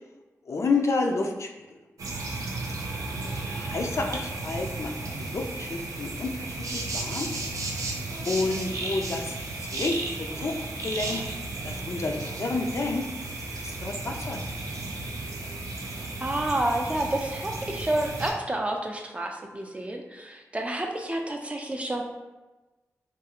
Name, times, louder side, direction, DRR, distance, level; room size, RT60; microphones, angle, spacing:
voice 1, 0.5-1.5 3.3-7.3 8.3-10.5 10.8-11.2 11.6-13.1 13.5-14.4, left 3 dB, 60° left, 3 dB, 0.3 m, -30 dB
sound 1, 2.0-18.3, right 2 dB, 90° right, 0.4 m, -34 dB
voice 2, 16.2-22.0, right 1 dB, 20° right, 2 dB, 0.4 m, -29 dB
2.4 x 2.3 x 2.8 m, 1.1 s
cardioid pair, 55°, 6 cm